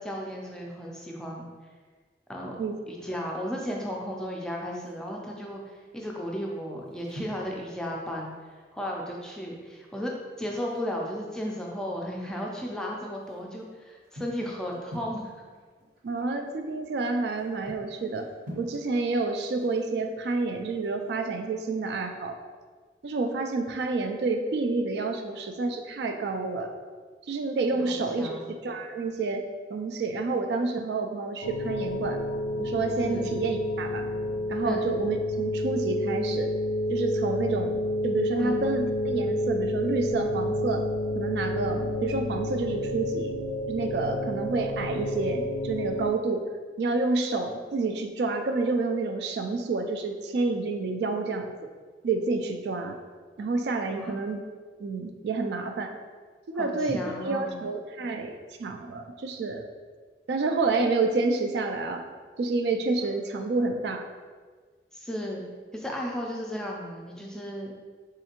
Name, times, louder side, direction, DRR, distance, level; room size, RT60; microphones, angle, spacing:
voice 1, 0.0-1.5 2.3-2.6 2.9-5.6 5.9-8.3 8.7-15.3 27.7-28.5 33.1-33.3 34.6-34.8 38.4-38.6 54.0-54.1 56.6-57.6 64.9-65.4 65.7-67.7, equal, 5° left, -2 dB, 0.4 m, -34 dB
sound 1, 4.7-5.3 6.0-6.2 6.5-9.1 9.4-9.5 9.8-9.9 10.4-12.5 12.9-21.3, equal, 55° right, 0.8 m, -48 dB
voice 2, 16.0-18.3 18.6-22.4 23.0-26.7 27.3-29.4 29.7-32.2 32.6-34.1 34.5-36.5 36.9-40.8 41.1-43.3 43.7-46.4 46.8-51.5 52.0-53.0 53.4-54.4 54.8-55.9 56.5-58.3 58.6-59.6 60.3-62.1 62.4-64.1, right 3 dB, 75° right, 5 dB, 0.3 m, -29 dB
sound 2, 31.4-46.1, left 1 dB, 80° left, 0.3 m, -29 dB
3.7 x 3.2 x 2.9 m, 1.5 s
head